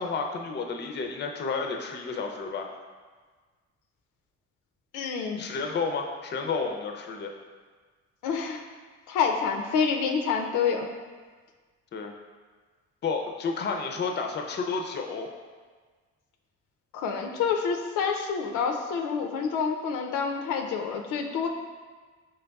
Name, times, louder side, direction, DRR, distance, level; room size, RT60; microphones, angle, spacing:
voice 1, 0.0-2.7 5.4-7.3 11.9-12.1 13.0-15.3, left 4 dB, 35° left, 3 dB, 0.5 m, -31 dB
voice 2, 4.9-5.4 8.2-8.6 9.1-10.9 16.9-21.5, left 6 dB, 85° left, 3 dB, 0.5 m, -27 dB
5.2 x 3.2 x 2.3 m, 1.5 s
cardioid pair, 90°, 30 cm